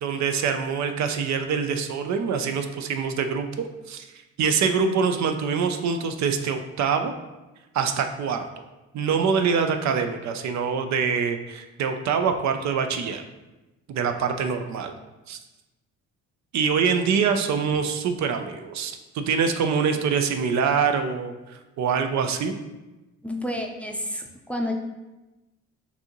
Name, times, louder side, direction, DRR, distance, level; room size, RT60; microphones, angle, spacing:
voice 1, 0.0-3.5 3.9-4.1 4.4-7.1 7.7-8.4 8.9-13.2 13.9-14.9 15.3-15.4 16.5-22.6, right 6 dB, 65° right, 6 dB, 0.5 m, -24 dB
voice 2, 23.2-24.7, left 1 dB, 5° left, 1 dB, 0.5 m, -30 dB
6.0 x 2.7 x 2.9 m, 1.1 s
cardioid pair, 90°, 30 cm